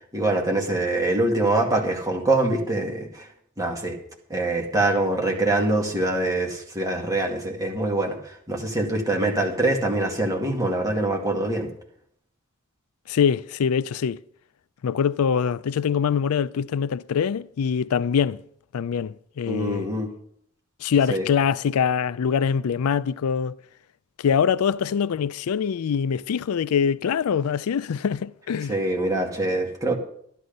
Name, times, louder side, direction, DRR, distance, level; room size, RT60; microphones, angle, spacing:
voice 1, 0.1-3.3 3.6-4.0 4.3-8.2 8.5-11.7 19.5-20.1 21.1-21.3 28.7-30.0, right 2 dB, 15° right, 2.1 m, -24 dB
voice 2, 13.1-14.2 14.8-18.4 18.7-19.9 20.8-23.6 24.2-28.7, left 7 dB, 85° left, 0.4 m, -24 dB
13.0 x 11.5 x 5.3 m
head